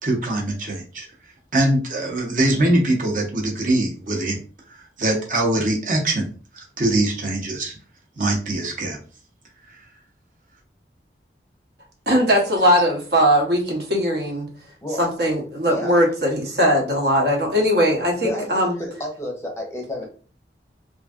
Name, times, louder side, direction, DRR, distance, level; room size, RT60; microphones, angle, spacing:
voice 1, 0.0-4.4 4.6-6.3 6.5-7.8 8.2-9.0 9.6-9.9, right 1 dB, 45° right, 0 dB, 0.8 m, -23 dB
voice 2, 12.1-14.5 15.0-18.7, equal, 65° right, 0 dB, 0.9 m, -19 dB
voice 3, 18.2-20.0, left 1 dB, 15° left, 0 dB, 0.6 m, -31 dB
3.0 x 2.6 x 2.4 m, 0.39 s
head